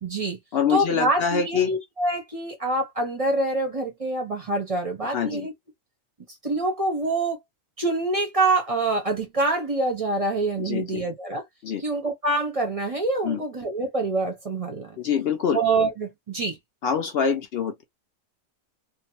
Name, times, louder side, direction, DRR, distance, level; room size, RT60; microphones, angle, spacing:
voice 1, 0.0-0.4 0.7-5.5 6.4-7.4 7.8-11.4 11.8-15.0 15.5-16.6, right 2 dB, 35° right, 0.6 m, -25 dB
voice 2, 0.5-1.7 5.0-5.5 10.6-11.0 11.6-11.8 13.2-13.4 15.0-15.6 16.8-17.8, left 7 dB, 70° left, 0.6 m, -25 dB
2.6 x 2.1 x 2.8 m
omnidirectional pair, 1.5 m